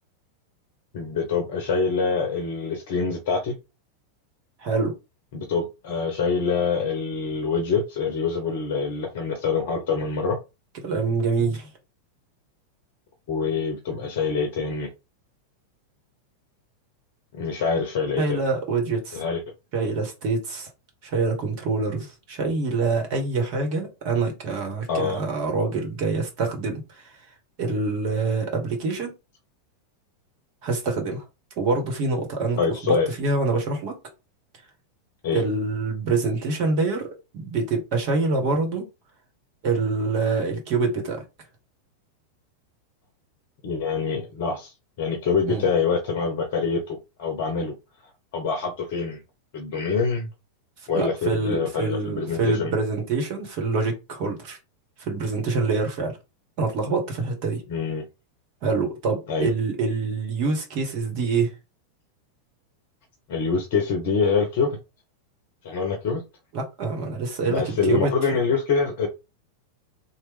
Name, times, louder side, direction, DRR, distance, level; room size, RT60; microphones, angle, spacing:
voice 1, 0.9-3.5 5.3-10.4 13.3-14.9 17.3-18.4 19.1-19.4 24.9-25.2 32.6-33.1 35.2-35.4 43.6-47.7 48.3-49.2 49.5-50.3 50.9-52.7 57.7-58.0 59.3-59.5 63.3-64.8 65.6-66.2 67.5-69.1, left 5 dB, 50° left, 0.7 m, -25 dB
voice 2, 4.6-4.9 10.8-11.7 18.2-19.2 19.7-20.7 21.0-26.8 27.6-29.1 30.6-31.2 31.6-34.0 35.3-37.1 37.3-38.8 39.6-41.2 45.5-45.6 50.9-54.6 55.0-56.2 56.6-57.6 58.6-61.5 66.5-68.1, right 3 dB, 45° right, 1.2 m, -25 dB
3.0 x 2.2 x 3.4 m
figure-of-eight pair, 90°, 0 cm